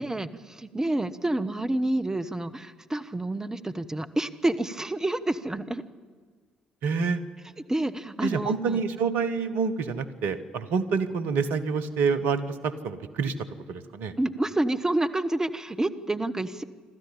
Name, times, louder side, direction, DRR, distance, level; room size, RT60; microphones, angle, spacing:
voice 1, 0.0-5.8 7.7-8.8 14.2-16.6, right 1 dB, 15° right, 11 dB, 1.1 m, -28 dB
voice 2, 6.8-7.2 8.2-14.1, right 5 dB, 65° right, 11 dB, 1.1 m, -27 dB
26.0 x 13.0 x 8.9 m, 1.5 s
figure-of-eight pair, 45°, 4 cm